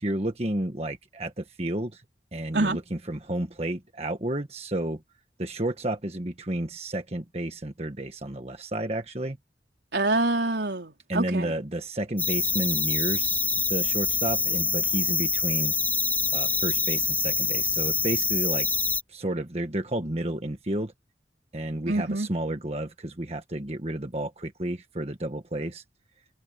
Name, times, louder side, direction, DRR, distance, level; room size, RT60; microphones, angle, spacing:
voice 1, 0.0-2.0 2.3-5.0 5.4-9.4 11.1-15.7 16.3-18.7 19.1-20.9 21.5-25.8, right 1 dB, 35° right, 1.5 m, -31 dB
voice 2, 9.9-11.5 21.9-22.3, right 2 dB, 80° right, 4.1 m, -26 dB
sound 1, 12.2-19.0, left 4 dB, 10° left, 2.7 m, -25 dB
head